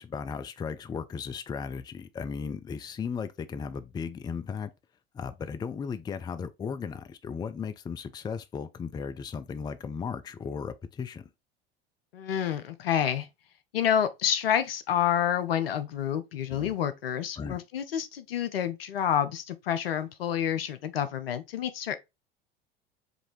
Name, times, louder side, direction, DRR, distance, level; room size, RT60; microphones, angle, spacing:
voice 1, 0.0-4.7 5.1-11.3 16.5-16.7 17.4-17.6, left 6 dB, 15° left, 0.4 m, -36 dB
voice 2, 12.1-13.3 13.7-22.0, left 9 dB, 75° left, 0.7 m, -28 dB
5.0 x 2.7 x 3.1 m
figure-of-eight pair, 75°, 29 cm